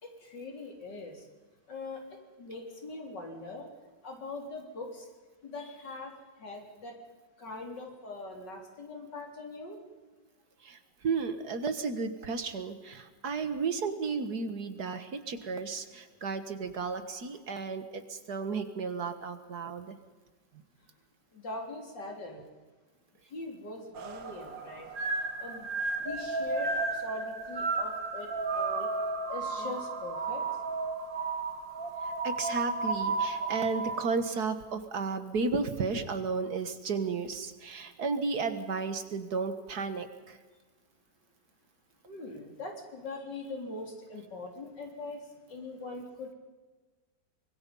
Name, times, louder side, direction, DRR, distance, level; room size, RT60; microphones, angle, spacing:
voice 1, 0.0-1.2 1.7-2.0 2.4-3.7 4.0-5.1 5.4-6.1 6.4-6.9 7.4-9.8 21.3-22.4 23.3-24.9 25.4-25.7 26.0-28.9 29.3-30.5 42.1-45.2 45.5-46.3, left 2 dB, 70° left, 2 dB, 4.2 m, -41 dB
voice 2, 11.0-20.0 32.2-40.4, right 4 dB, 60° right, 9 dB, 1.9 m, -33 dB
sound 1, 23.9-34.1, right 3 dB, 80° right, 2.3 m, -33 dB
25.0 x 21.5 x 5.4 m, 1.3 s
omnidirectional pair, 2.0 m